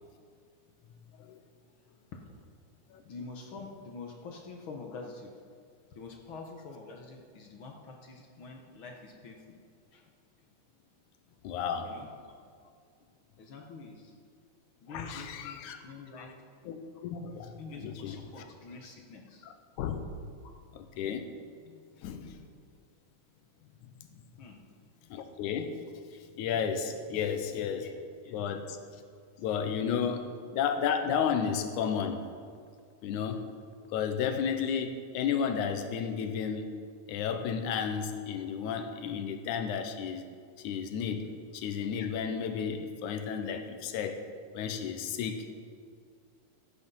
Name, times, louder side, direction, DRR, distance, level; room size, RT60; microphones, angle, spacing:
voice 1, 3.0-5.3 5.9-9.5 9.9-10.0 11.8-12.1 13.4-14.1 14.8-16.3 17.6-19.4 24.4-24.6 28.2-28.3 29.0-29.1 30.1-30.2, left 4 dB, 60° left, 1 dB, 1.4 m, -46 dB
voice 2, 11.4-11.9 14.9-15.8 16.2-16.3 16.7-18.2 19.8-20.0 20.7-21.3 22.0-22.4 25.1-25.8 26.2-27.9 28.3-28.8 29.4-30.3 30.5-32.3 33.0-33.5 33.9-36.8 37.1-40.2 40.6-44.3 44.5-45.5, left 7 dB, 75° left, 7 dB, 2.3 m, -32 dB
15.0 x 8.7 x 5.5 m, 2.2 s
omnidirectional pair, 3.6 m